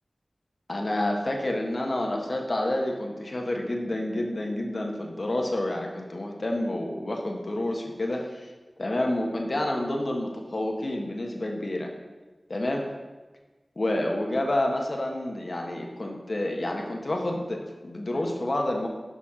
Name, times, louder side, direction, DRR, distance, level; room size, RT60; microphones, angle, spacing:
voice 1, 0.7-8.5 8.8-11.9 12.5-12.8 13.7-18.9, left 1 dB, 55° left, 1 dB, 1.4 m, -29 dB
7.2 x 6.1 x 5.8 m, 1.2 s
wide cardioid pair, 75°, 0 cm